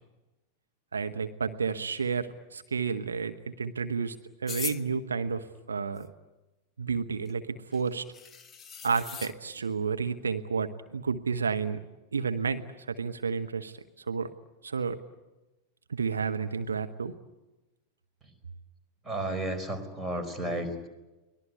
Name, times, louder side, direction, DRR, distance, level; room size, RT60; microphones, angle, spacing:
voice 1, 0.9-6.1 6.8-8.1 8.8-11.8 12.1-14.3 14.6-15.0 15.9-17.1, right 5 dB, 75° right, 8 dB, 0.9 m, -31 dB
sound 1, 4.5-4.8 7.3-7.4 7.7-7.8 8.1-9.3, left 7 dB, 20° left, 1.1 m, -39 dB
voice 2, 19.1-20.9, right 1 dB, 15° right, 8 dB, 4.5 m, -33 dB
24.0 x 19.5 x 9.4 m, 1.1 s
figure-of-eight pair, 90°, 0 cm